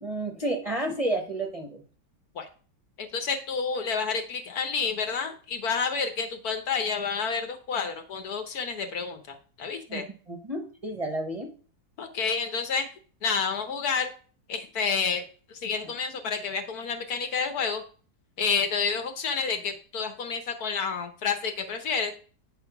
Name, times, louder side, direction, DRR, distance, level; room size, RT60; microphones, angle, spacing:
voice 1, 0.0-1.8 9.9-11.5, right 1 dB, 30° right, 1 dB, 0.8 m, -31 dB
voice 2, 3.0-10.0 12.0-12.9 13.2-14.1 14.5-15.2 15.5-17.8 18.4-22.1, left 5 dB, 65° left, 6 dB, 1.5 m, -29 dB
8.7 x 3.9 x 5.9 m, 0.40 s
omnidirectional pair, 1.8 m